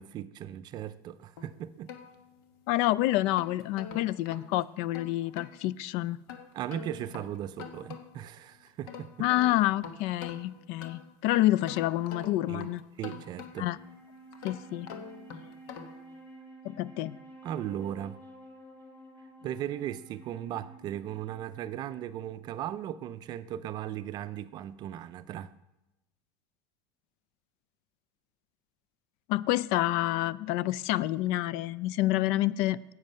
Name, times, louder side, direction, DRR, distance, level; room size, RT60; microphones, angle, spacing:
voice 1, 0.0-1.9 6.5-9.3 12.5-12.7 13.0-13.7 17.4-18.2 19.4-25.5, right 11 dB, 35° right, 0.4 m, -37 dB
sound 1, 1.4-2.7 3.2-5.6 6.3-8.3 8.7-11.2 11.7-13.8 14.3-16.1, left 6 dB, 80° left, 1.2 m, -45 dB
voice 2, 2.7-6.2 9.2-12.8 13.6-13.8 14.4-14.9 16.6-17.2 29.3-32.8, left 15 dB, 60° left, 0.4 m, -28 dB
Wind instrument woodwind instrument, 13.5-23.0, right 1 dB, 20° left, 2.1 m, -52 dB
10.5 x 8.1 x 5.5 m
supercardioid pair, 145°, 12 cm